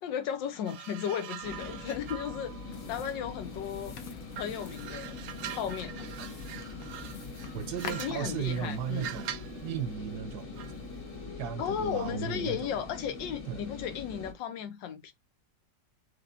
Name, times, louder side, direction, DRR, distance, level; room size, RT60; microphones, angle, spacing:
voice 1, 0.0-3.9 4.4-5.2 5.5-6.1 7.8-9.1 11.6-15.1, left 8 dB, 85° left, 1.5 m, -35 dB
sound 1, 0.6-3.9 4.3-9.6 10.6-10.8, right 10 dB, 90° right, 1.3 m, -44 dB
sound 2, 1.4-14.3, left 3 dB, 40° left, 1.9 m, -43 dB
sound 3, 2.7-9.1, left 7 dB, 60° left, 1.0 m, -48 dB
voice 2, 7.5-9.4 9.6-10.7 11.4-12.8 13.5-13.7, right 8 dB, 70° right, 1.1 m, -35 dB
6.4 x 3.1 x 2.5 m
omnidirectional pair, 1.9 m